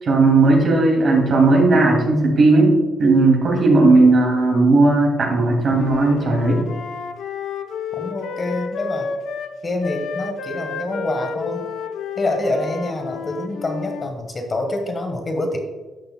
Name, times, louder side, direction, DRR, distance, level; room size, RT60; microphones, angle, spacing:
voice 1, 0.0-6.6, right 2 dB, 55° right, 0 dB, 2.4 m, -15 dB
Wind instrument woodwind instrument, 5.6-9.5 9.8-14.1, left 6 dB, 75° left, 0.6 m, -31 dB
voice 2, 7.9-9.1 9.6-11.7 12.2-15.6, left 2 dB, 35° left, 4 dB, 1.3 m, -26 dB
11.5 x 6.7 x 2.2 m, 1.2 s
cardioid pair, 90°, 0 cm